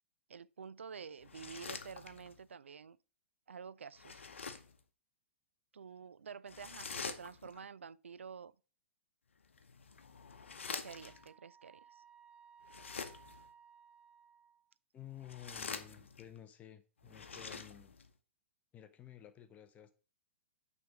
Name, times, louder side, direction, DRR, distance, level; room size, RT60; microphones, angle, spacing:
voice 1, 0.3-3.0 3.5-4.4 5.7-8.5 10.8-12.0, right 6 dB, 75° right, 0.4 m, -49 dB
sound 1, 1.2-2.4 3.9-4.8 6.5-7.6 9.4-11.3 12.6-13.5 15.1-16.4 17.0-18.1, left 5 dB, 75° left, 0.8 m, -46 dB
Wind instrument woodwind instrument, 10.9-14.7, right 7 dB, 15° right, 0.4 m, -61 dB
voice 2, 14.9-18.0 18.7-19.9, left 11 dB, 20° left, 0.6 m, -53 dB
6.0 x 3.4 x 6.0 m
figure-of-eight pair, 110°, 7 cm